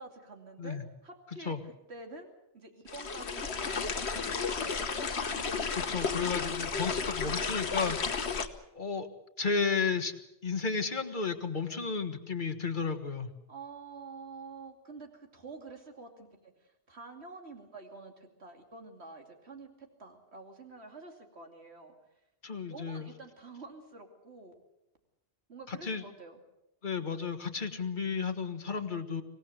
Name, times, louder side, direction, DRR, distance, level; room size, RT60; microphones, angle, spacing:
voice 1, 0.0-5.1 13.5-21.9 22.7-24.5 25.5-26.4, right 3 dB, 75° right, 4 dB, 2.9 m, -48 dB
sound 1, 2.9-8.5, left 5 dB, 75° left, 1.6 m, -33 dB
voice 2, 5.7-8.1 8.7-9.1 9.4-10.1 10.4-13.3 22.4-23.1 25.7-26.0 26.8-29.2, left 5 dB, 45° left, 7 dB, 1.7 m, -33 dB
25.0 x 17.5 x 8.0 m, 0.89 s
omnidirectional pair, 1.1 m